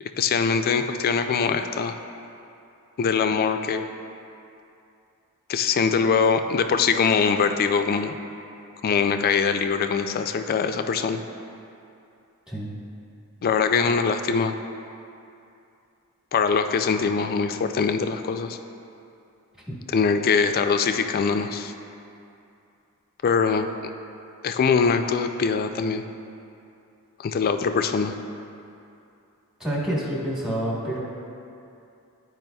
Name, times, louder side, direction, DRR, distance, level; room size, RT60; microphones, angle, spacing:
voice 1, 0.0-2.0 3.0-3.9 5.5-8.1 8.8-11.2 13.4-14.6 16.3-18.6 19.9-21.7 23.2-23.7 24.4-26.0 27.2-28.1, left 5 dB, 45° left, 7 dB, 0.3 m, -22 dB
voice 2, 29.6-31.0, right 1 dB, 5° right, -5 dB, 1.1 m, -28 dB
10.5 x 4.7 x 2.3 m, 2.6 s
head